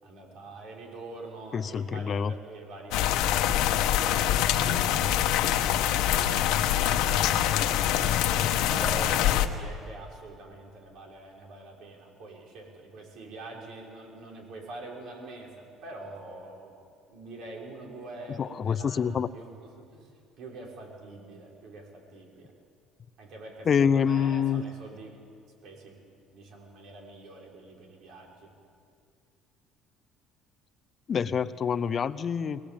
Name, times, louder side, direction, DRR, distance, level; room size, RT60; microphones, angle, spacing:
voice 1, 0.0-8.2 8.7-16.7 17.1-22.5 23.2-25.2 25.6-26.0 26.3-28.5, right 2 dB, 60° right, -1 dB, 6.0 m, -44 dB
voice 2, 1.5-2.3 18.4-19.3 23.7-24.6 31.1-32.6, left 7 dB, 35° left, 13 dB, 0.6 m, -26 dB
sound 1, 2.9-9.5, left 11 dB, 80° left, 1.2 m, -24 dB
23.5 x 19.0 x 8.8 m, 2.4 s
cardioid pair, 125°, 0 cm